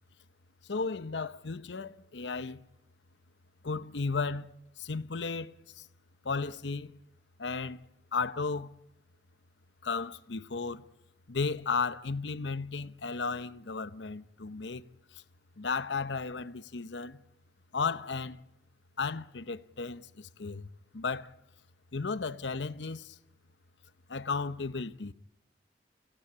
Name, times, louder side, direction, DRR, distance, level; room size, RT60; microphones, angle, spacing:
voice 1, 0.7-2.6 3.6-4.5 4.8-5.9 6.2-6.9 7.4-7.8 8.1-8.7 9.8-10.8 11.3-14.8 15.1-15.2 15.6-17.2 17.7-18.4 19.0-20.7 20.9-21.4 21.9-23.2 24.1-25.1, left 4 dB, 80° left, 0.8 m, -34 dB
25.5 x 17.5 x 8.6 m
head